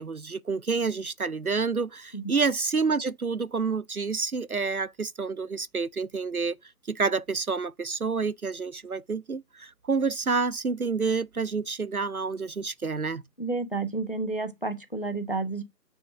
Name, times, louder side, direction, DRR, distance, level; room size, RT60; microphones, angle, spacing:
voice 1, 0.0-6.6 6.9-13.2, right 4 dB, 60° right, 0.5 m, -28 dB
voice 2, 13.4-15.6, right 3 dB, 30° left, 0.8 m, -31 dB
9.1 x 3.6 x 5.9 m
figure-of-eight pair, 165°, 50 cm